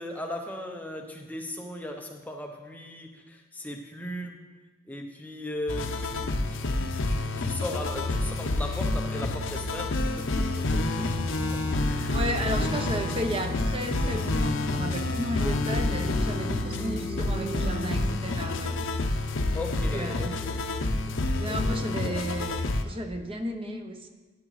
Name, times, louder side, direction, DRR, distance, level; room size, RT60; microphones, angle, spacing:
voice 1, 0.0-4.5 4.9-11.1 11.7-12.1 12.6-12.7 19.5-21.2 21.4-22.2, left 1 dB, 10° left, 2 dB, 0.6 m, -38 dB
sound 1, 5.7-22.8, left 2 dB, 65° left, 0.7 m, -28 dB
sound 2, 10.9-18.1, equal, 35° left, 2.4 m, -37 dB
voice 2, 12.1-18.8 19.7-20.3 21.4-24.1, equal, 25° right, 5 dB, 0.7 m, -34 dB
12.5 x 8.9 x 3.1 m, 1.3 s
head